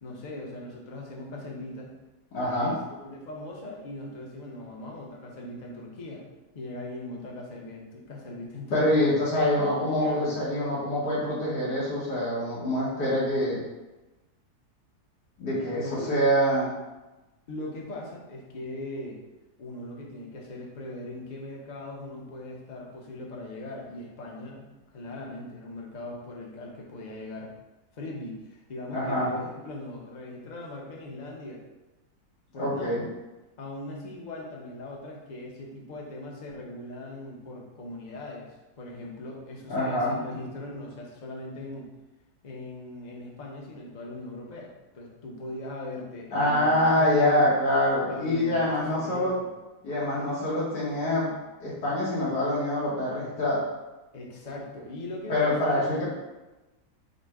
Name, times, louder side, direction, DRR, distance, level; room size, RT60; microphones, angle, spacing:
voice 1, 0.0-1.9 2.5-6.2 6.5-9.1 9.7-10.4 15.8-16.2 17.5-19.2 19.6-27.5 27.9-31.6 32.5-33.0 33.6-41.9 42.4-47.5 48.1-49.5 54.1-56.0, left 1 dB, 40° left, -2 dB, 0.7 m, -39 dB
voice 2, 2.3-2.7 8.7-13.6 15.4-16.7 28.9-29.3 32.6-33.1 39.7-40.1 46.3-49.3 49.8-51.3 51.6-53.6 55.3-56.1, left 1 dB, 90° left, -9 dB, 1.9 m, -25 dB
5.0 x 2.1 x 4.7 m, 1.1 s
omnidirectional pair, 1.7 m